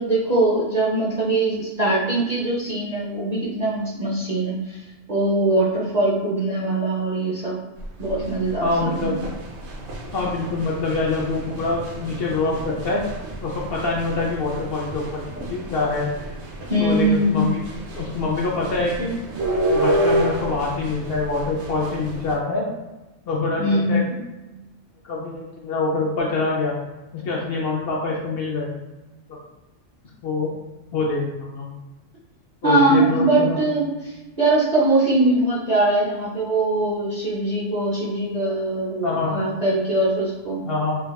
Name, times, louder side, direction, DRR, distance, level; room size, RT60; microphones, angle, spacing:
voice 1, 0.0-4.8 5.1-7.6 8.0-9.2 16.7-17.5 23.6-24.0 32.6-40.6, right 2 dB, 45° right, -6 dB, 0.5 m, -21 dB
sound 1, 7.8-22.3, right 1 dB, 65° right, 0.9 m, -29 dB
voice 2, 8.6-9.2 10.1-13.0 13.4-15.2 15.5-16.1 16.8-17.6 17.9-19.1 19.7-22.6 23.3-24.0 25.0-26.8 27.1-28.7 30.2-30.5 30.9-31.7 32.6-33.6 39.0-39.4 40.7-41.0, left 3 dB, 60° left, -3 dB, 0.7 m, -25 dB
4.4 x 2.3 x 2.2 m, 1.1 s
omnidirectional pair, 1.3 m